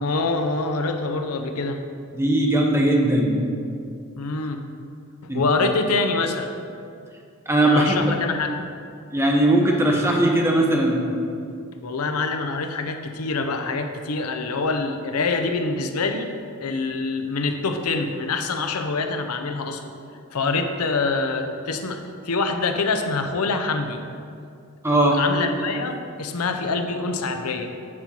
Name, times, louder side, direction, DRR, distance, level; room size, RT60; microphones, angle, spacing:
voice 1, 0.0-1.8 4.2-4.6 5.2-6.5 7.6-8.5 11.8-16.3 16.6-20.0 20.3-24.0 25.1-27.7, left 3 dB, 85° left, 6 dB, 0.7 m, -25 dB
voice 2, 2.2-3.4 5.3-5.4 7.5-8.1 9.1-11.0 24.8-25.2, right 1 dB, 10° right, 0 dB, 0.9 m, -19 dB
8.6 x 4.4 x 5.4 m, 2.4 s
head